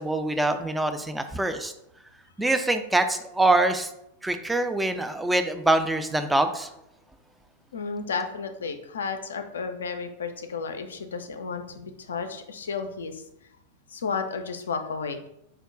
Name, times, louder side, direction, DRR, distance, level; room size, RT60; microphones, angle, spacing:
voice 1, 0.0-1.7 2.4-3.9 4.2-6.7, right 2 dB, 5° right, 7 dB, 0.3 m, -24 dB
voice 2, 7.7-13.2 13.9-15.3, left 5 dB, 70° left, 7 dB, 0.4 m, -32 dB
4.6 x 2.1 x 3.5 m, 0.79 s
figure-of-eight pair, 90°, 0 cm